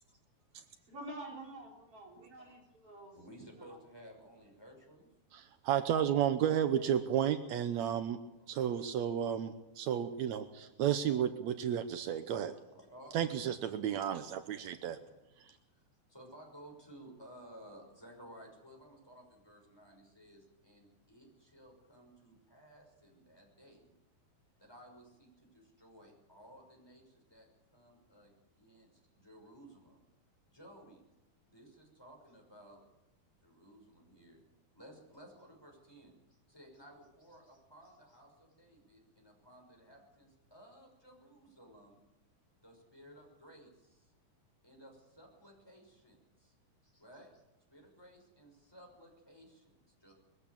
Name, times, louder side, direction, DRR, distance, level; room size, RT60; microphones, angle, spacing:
voice 1, 0.5-3.2 3.5-3.8, right 1 dB, 35° right, 0 dB, 4.7 m, -48 dB
voice 2, 3.1-5.1 8.4-8.7 12.7-13.5 15.0-15.2 15.7-15.8 16.1-23.9 24.6-28.9 29.2-30.0 30.5-31.0 31.5-32.8 33.4-34.4 34.7-42.0 42.6-44.1 44.6-46.5 46.8-47.4 47.7-50.1, equal, 5° left, 1 dB, 5.7 m, -57 dB
voice 3, 5.3-8.2 8.5-12.5 13.1-15.0 15.4-15.5, right 9 dB, 80° right, 9 dB, 1.6 m, -32 dB
22.0 x 15.5 x 8.6 m, 0.94 s
omnidirectional pair, 4.4 m